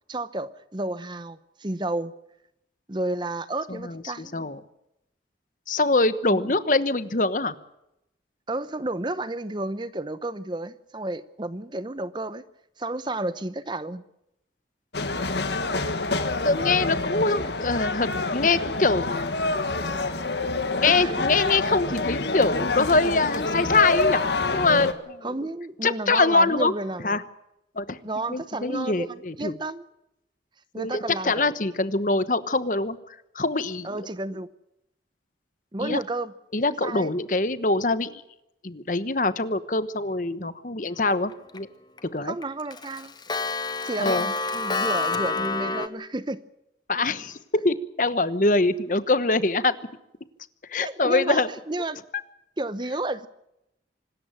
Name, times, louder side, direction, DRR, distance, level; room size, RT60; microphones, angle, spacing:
voice 1, 0.1-2.1 2.9-4.3 6.3-6.5 8.5-12.4 12.8-14.0 20.9-21.1 23.5-23.7 25.2-27.2 28.0-29.8 30.7-31.5 33.8-34.5 35.7-36.3 36.8-37.1 42.2-43.1 43.8-46.4 50.7-52.0 52.6-53.3, right 2 dB, 25° right, 14 dB, 0.8 m, -31 dB
voice 2, 3.7-4.6 5.7-7.5 16.4-20.1 20.7-24.2 24.5-25.3 25.8-26.7 27.0-27.2 27.8-28.0 28.3-29.5 30.8-33.0 33.3-33.9 35.8-36.0 36.5-38.2 38.6-41.7 42.0-42.3 44.0-44.3 46.9-49.8 50.7-51.5, left 3 dB, 45° left, 14 dB, 1.0 m, -24 dB
sound 1, 14.9-24.9, left 3 dB, 70° left, 1.8 m, -27 dB
Clock, 41.1-41.6 42.0-42.1 42.4-45.9, left 3 dB, 25° left, 1.0 m, -28 dB
25.5 x 13.0 x 9.1 m, 0.85 s
head